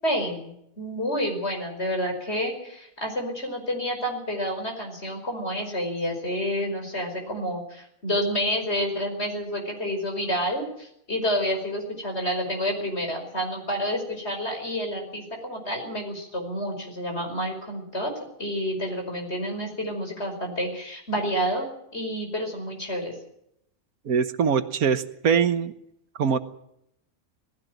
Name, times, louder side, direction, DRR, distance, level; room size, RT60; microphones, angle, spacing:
voice 1, 0.0-18.1 18.4-23.1, equal, 45° left, 3 dB, 5.6 m, -29 dB
voice 2, 24.0-25.7 26.2-26.4, right 6 dB, 80° right, 11 dB, 1.6 m, -22 dB
19.0 x 16.0 x 9.2 m, 0.76 s
omnidirectional pair, 1.5 m